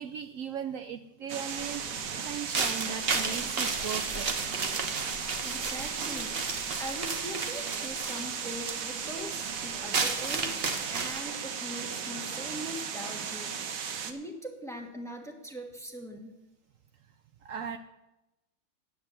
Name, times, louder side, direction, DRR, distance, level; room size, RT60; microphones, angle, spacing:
voice 1, 0.0-4.6 17.4-17.8, right 7 dB, 90° right, 9 dB, 0.7 m, -38 dB
sound 1, 1.3-14.1, right 7 dB, 60° right, 1.1 m, -36 dB
sound 2, 1.5-11.2, right 4 dB, 40° right, 1.0 m, -34 dB
voice 2, 5.4-6.4 6.8-13.7 14.0-16.3, equal, ahead, 2 dB, 1.0 m, -41 dB
9.5 x 8.5 x 7.4 m, 0.99 s
omnidirectional pair, 2.0 m